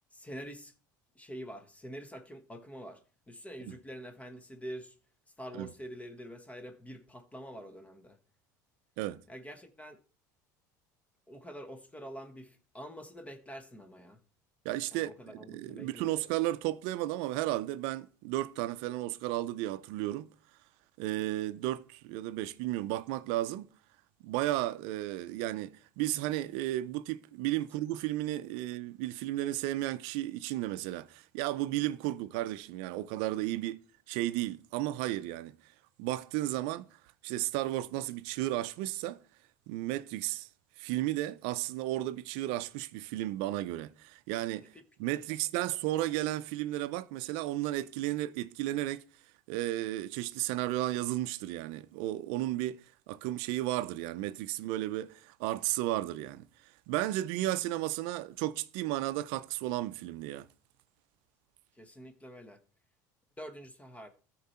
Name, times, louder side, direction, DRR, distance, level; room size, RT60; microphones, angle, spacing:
voice 1, 0.1-0.7 1.1-4.9 5.4-8.2 9.3-10.0 11.3-14.2 14.9-16.2 33.5-33.6 44.7-44.8 61.7-62.6 63.4-64.1, equal, 15° left, 1.3 m, -46 dB
voice 2, 14.6-15.1 15.5-20.3 21.0-23.7 24.2-33.8 34.1-35.6 36.0-36.9 37.2-39.2 39.7-40.5 40.8-44.7 45.0-49.1 49.5-52.8 53.1-56.5 56.9-60.5, right 15 dB, 70° right, 0.5 m, -33 dB
13.5 x 4.6 x 4.3 m
supercardioid pair, 90°, 10 cm